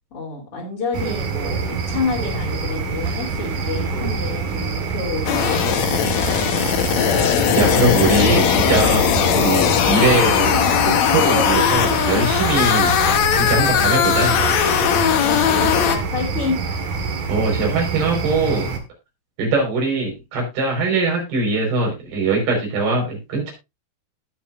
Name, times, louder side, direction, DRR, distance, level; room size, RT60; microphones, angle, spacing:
voice 1, 0.1-6.1 12.9-13.1 15.2-16.6, left 4 dB, 35° left, -4 dB, 3.3 m, -29 dB
sound 1, 0.9-18.8, right 4 dB, 55° right, 2.8 m, -26 dB
sound 2, 5.2-16.0, left 9 dB, 75° left, 1.7 m, -19 dB
voice 2, 7.5-10.6 11.1-12.9 13.3-14.4 17.3-18.7 19.4-23.5, right 3 dB, 75° right, 0 dB, 6.7 m, -21 dB
18.5 x 6.5 x 2.5 m, 0.23 s
omnidirectional pair, 4.6 m